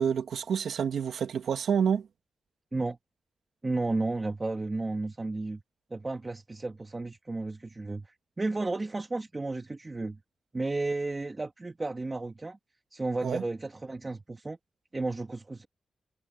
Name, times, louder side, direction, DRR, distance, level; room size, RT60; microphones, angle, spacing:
voice 1, 0.0-2.1 13.2-13.4, right 7 dB, 80° right, 2.3 m, -28 dB
voice 2, 3.6-5.6 5.9-10.2 10.5-12.6 12.9-14.6 14.9-15.7, right 2 dB, 20° right, 1.8 m, -33 dB
wide cardioid pair, 130°, 0 cm